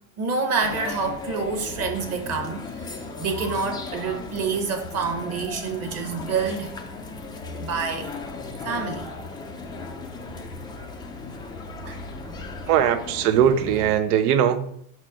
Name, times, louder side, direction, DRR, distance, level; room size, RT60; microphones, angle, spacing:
voice 1, 0.2-2.9 3.2-6.7 7.6-8.1 8.6-9.1, right 4 dB, 35° right, 5 dB, 1.2 m, -27 dB
sound 1, 0.6-14.0, left 3 dB, 10° left, 0.4 m, -36 dB
voice 2, 12.7-14.6, right 9 dB, 80° right, 10 dB, 0.9 m, -20 dB
6.1 x 4.4 x 5.0 m, 0.69 s
supercardioid pair, 140°, 45 cm